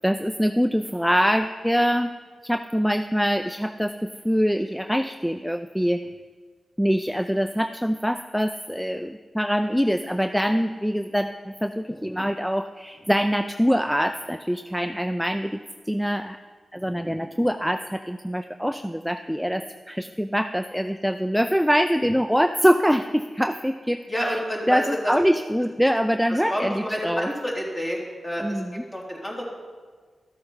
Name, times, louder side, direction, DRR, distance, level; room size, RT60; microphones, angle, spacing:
voice 1, 0.0-2.1 2.4-3.9 4.2-6.0 6.8-15.5 15.9-16.4 16.7-24.4 24.7-27.3 28.4-28.7, equal, ahead, 9 dB, 0.4 m, -24 dB
voice 2, 24.1-25.1 26.3-29.4, equal, 25° left, -3 dB, 3.2 m, -29 dB
13.0 x 7.8 x 5.6 m, 1.5 s
cardioid pair, 65°, 0 cm